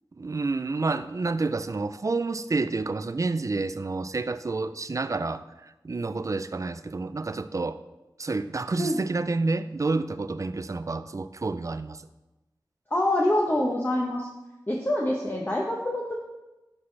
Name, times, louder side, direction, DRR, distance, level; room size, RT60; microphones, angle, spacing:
voice 1, 0.1-7.8 8.2-12.1, right 3 dB, 45° right, 12 dB, 0.4 m, -29 dB
voice 2, 12.9-14.3 14.7-16.1, left 1 dB, 25° left, -1 dB, 0.9 m, -25 dB
12.0 x 5.6 x 3.3 m, 1.0 s
wide cardioid pair, 75°, 8 cm